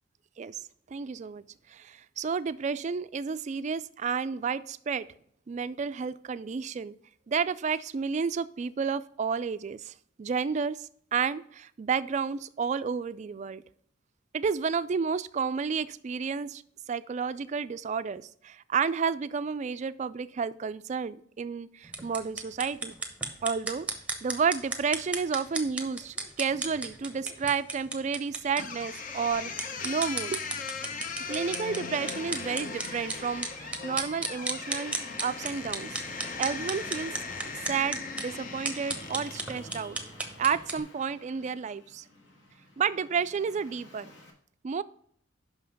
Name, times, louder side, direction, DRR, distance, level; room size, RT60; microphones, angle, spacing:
voice 1, 0.4-5.1 5.5-7.0 7.3-13.6 14.3-16.6 16.9-23.0 23.4-23.9 24.2-30.4 31.3-34.9 35.2-36.0 36.4-37.1 37.7-40.0 40.4-42.1 42.8-44.1 44.6-44.8, right 6 dB, 40° right, 16 dB, 0.3 m, -31 dB
sound 1, 21.8-40.8, right 3 dB, 5° right, 0.8 m, -36 dB
sound 2, 28.6-39.6, left 5 dB, 45° left, 0.7 m, -39 dB
Traffic noise roadway noise, 29.3-44.3, left 1 dB, 65° left, 1.6 m, -50 dB
5.7 x 5.6 x 5.2 m, 0.64 s
head